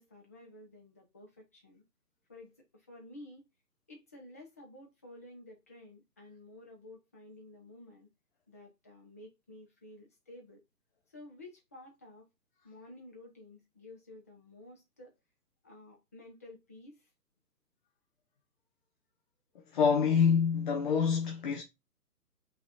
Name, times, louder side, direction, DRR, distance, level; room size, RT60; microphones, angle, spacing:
voice 1, 0.0-1.8 2.3-3.4 3.9-8.1 8.5-10.6 11.1-12.3 12.6-15.1 15.6-17.1, left 1 dB, 10° left, 0.6 m, -52 dB
voice 2, 19.7-21.6, left 6 dB, 30° left, 1.0 m, -26 dB
5.9 x 4.1 x 4.3 m
figure-of-eight pair, 145°, 50 cm